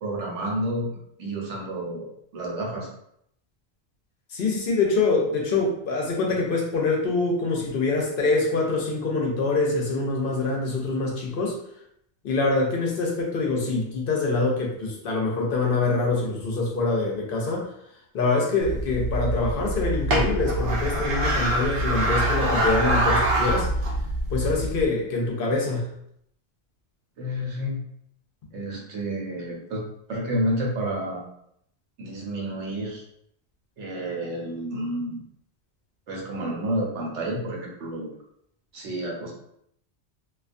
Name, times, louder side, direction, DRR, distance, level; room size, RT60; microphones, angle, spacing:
voice 1, 0.0-0.9 1.2-2.9 27.2-27.8 28.5-29.8 30.1-31.2 32.0-33.0 33.8-35.2 36.1-38.1 38.7-39.3, right 1 dB, 90° right, -2 dB, 1.0 m, -30 dB
voice 2, 4.3-11.6 12.2-17.7 18.1-23.7 24.3-25.9, left 3 dB, 60° left, -1 dB, 0.7 m, -25 dB
sound 1, 18.6-24.9, right 1 dB, 60° right, 0.7 m, -25 dB
2.3 x 2.2 x 2.5 m, 0.73 s
omnidirectional pair, 1.2 m